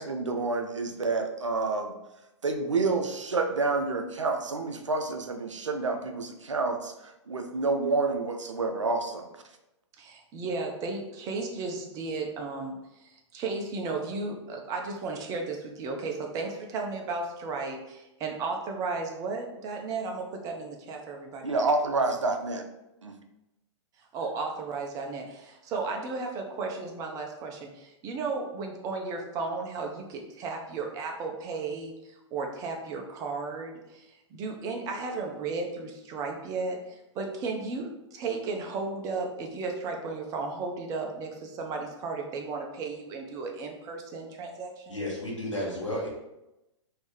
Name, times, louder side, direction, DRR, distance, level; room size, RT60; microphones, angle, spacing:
voice 1, 0.0-1.9 2.4-9.3 21.4-22.7 23.0-23.1, right 3 dB, 75° right, 5 dB, 0.5 m, -28 dB
voice 2, 10.0-21.7 24.1-45.0, right 3 dB, 20° right, 2 dB, 0.5 m, -34 dB
voice 3, 44.9-46.1, left 1 dB, 80° left, -3 dB, 1.1 m, -32 dB
3.1 x 2.7 x 3.5 m, 0.93 s
figure-of-eight pair, 105°, 16 cm